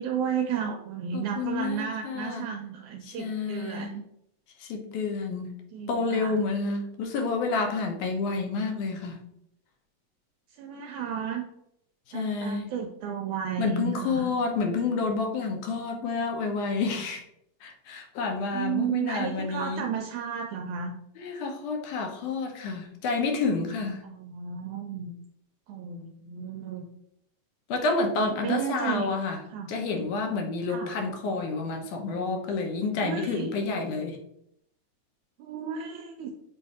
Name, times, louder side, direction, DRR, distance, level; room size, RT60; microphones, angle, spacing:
voice 1, 0.0-4.0 5.7-6.4 10.6-11.4 12.1-14.3 18.5-20.9 24.0-25.1 25.7-26.8 28.2-29.1 29.5-29.7 30.7-30.9 33.0-33.5 35.4-36.3, right 8 dB, 80° right, 2 dB, 1.9 m, -33 dB
voice 2, 1.1-2.5 3.0-3.9 4.6-5.5 5.9-9.2 12.1-12.7 13.6-17.2 17.6-19.8 21.2-24.0 27.7-29.4 29.7-34.2, left 4 dB, 80° left, 3 dB, 2.4 m, -29 dB
7.6 x 2.6 x 4.7 m, 0.75 s
omnidirectional pair, 3.6 m